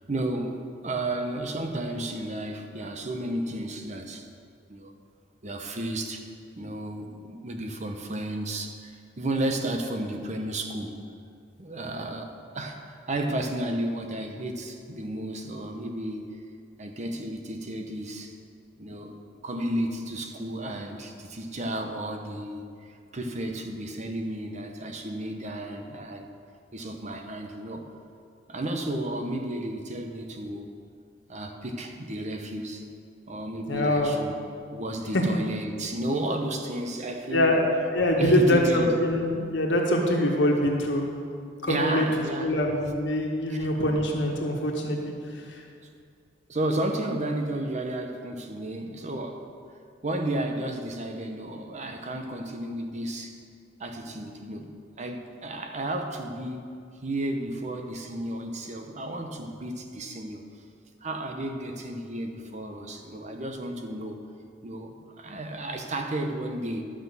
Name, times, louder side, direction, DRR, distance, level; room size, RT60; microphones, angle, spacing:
voice 1, 0.1-4.3 4.7-4.9 5.4-6.2 6.5-11.0 11.6-16.4 16.8-18.3 18.8-19.1 19.4-26.3 26.7-27.9 28.5-30.7 31.3-32.8 33.3-34.4 34.7-37.6 38.2-39.0 41.7-42.5 43.5-43.7 46.5-49.4 50.0-53.4 53.8-54.7 55.0-56.7 57.0-60.4 61.0-64.2 64.6-66.8, right 1 dB, 40° right, 4 dB, 0.9 m, -32 dB
voice 2, 33.7-34.1 35.1-35.2 37.3-37.7 37.9-41.0 41.6-42.0 42.4-45.1, left 1 dB, 70° left, 0 dB, 1.6 m, -24 dB
11.5 x 6.1 x 6.9 m, 2.3 s
head